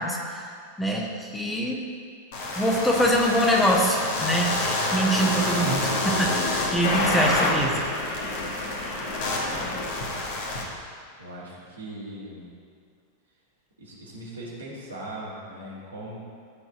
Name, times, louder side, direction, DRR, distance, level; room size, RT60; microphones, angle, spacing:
voice 1, 0.0-1.9 2.5-7.8, equal, 5° left, -2 dB, 1.3 m, -24 dB
sound 1, 2.3-10.6, left 2 dB, 55° left, 1.7 m, -27 dB
voice 2, 9.3-9.8 11.2-12.5 13.8-16.2, right 1 dB, 75° right, -6 dB, 2.6 m, -39 dB
13.5 x 4.5 x 5.7 m, 2.2 s
figure-of-eight pair, 90°, 0 cm